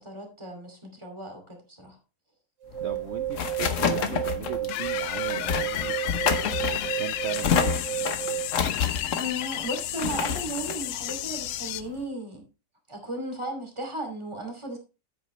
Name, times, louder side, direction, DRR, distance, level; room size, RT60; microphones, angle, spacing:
voice 1, 0.0-2.0 9.1-12.5 12.9-14.8, right 1 dB, 15° right, 2.6 m, -35 dB
sound 1, 2.6-8.6, right 13 dB, 80° right, 2.3 m, -32 dB
sound 2, 2.7-12.0, left 7 dB, 50° left, 1.2 m, -29 dB
voice 2, 2.8-7.9, right 7 dB, 60° right, 0.7 m, -39 dB
sound 3, 4.7-11.8, left 14 dB, 85° left, 1.3 m, -33 dB
10.0 x 8.4 x 3.1 m
omnidirectional pair, 1.8 m